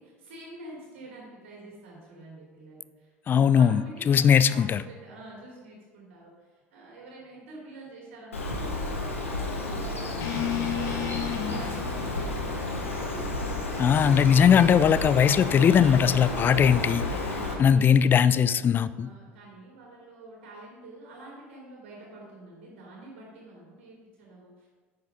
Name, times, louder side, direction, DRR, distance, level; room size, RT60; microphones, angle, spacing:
voice 1, 0.0-14.5 17.0-18.5 19.0-24.7, right 2 dB, 60° right, -4 dB, 3.1 m, -47 dB
voice 2, 3.3-4.8 13.8-17.0 17.6-19.1, left 8 dB, 30° left, 16 dB, 0.4 m, -20 dB
Bird, 8.3-17.5, left 2 dB, 80° left, 1.4 m, -31 dB
sound 1, 10.2-14.3, left 9 dB, 45° left, 1.5 m, -34 dB
9.4 x 6.6 x 5.2 m, 1.4 s
figure-of-eight pair, 65°, 7 cm